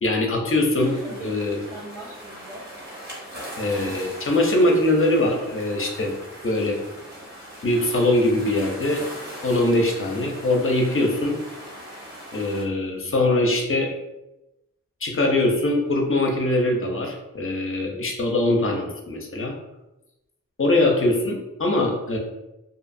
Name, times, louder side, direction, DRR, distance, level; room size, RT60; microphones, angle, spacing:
voice 1, 0.0-0.9 1.2-1.6 3.6-6.2 6.4-6.8 7.6-9.0 9.4-11.4 12.3-13.9 15.0-19.5 20.6-22.2, left 1 dB, 45° left, 1 dB, 0.6 m, -22 dB
voice 2, 0.7-2.6, equal, 90° right, -14 dB, 1.1 m, -39 dB
sound 1, 0.8-12.6, equal, 35° right, 1.0 m, -40 dB
2.6 x 2.4 x 2.5 m, 0.96 s
wide cardioid pair, 60°, 30 cm